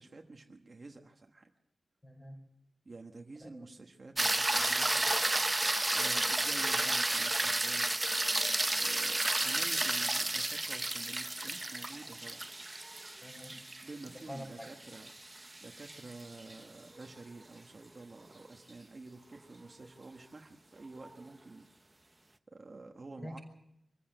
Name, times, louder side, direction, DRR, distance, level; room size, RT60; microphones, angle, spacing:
voice 1, 0.0-1.5 2.8-5.3 5.9-8.1 8.8-12.5 13.5-15.1 15.6-21.7 22.5-23.4, right 3 dB, 30° right, 3 dB, 1.3 m, -49 dB
voice 2, 2.0-2.4 3.4-3.7 13.2-13.6 14.1-14.8 23.2-23.4, equal, 20° left, 2 dB, 5.1 m, -46 dB
sound 1, 4.2-16.6 21.0-21.1, right 2 dB, 15° right, 0.7 m, -32 dB
24.0 x 15.0 x 7.8 m, 0.80 s
wide cardioid pair, 175°, 0 cm